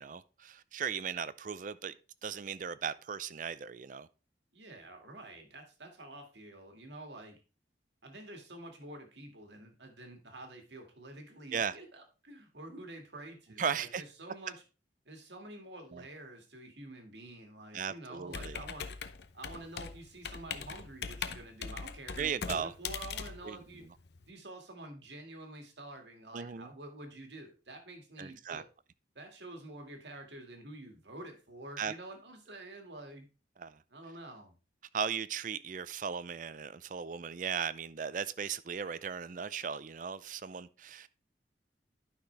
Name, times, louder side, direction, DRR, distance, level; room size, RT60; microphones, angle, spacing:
voice 1, 0.0-1.9 2.2-4.1 11.5-11.8 13.6-14.0 15.9-16.0 17.7-18.6 22.2-22.7 23.4-23.6 26.3-26.7 28.2-28.6 31.8-31.9 33.6-33.8 34.9-41.1, right 7 dB, 45° right, 0.4 m, -37 dB
voice 2, 4.5-7.4 8.0-14.6 15.1-18.9 19.3-23.8 24.3-28.7 29.2-33.3 33.9-34.5, right 1 dB, 80° right, 2.2 m, -48 dB
Computer keyboard, 18.3-24.2, left 6 dB, 70° left, 0.7 m, -41 dB
11.5 x 6.0 x 3.4 m
head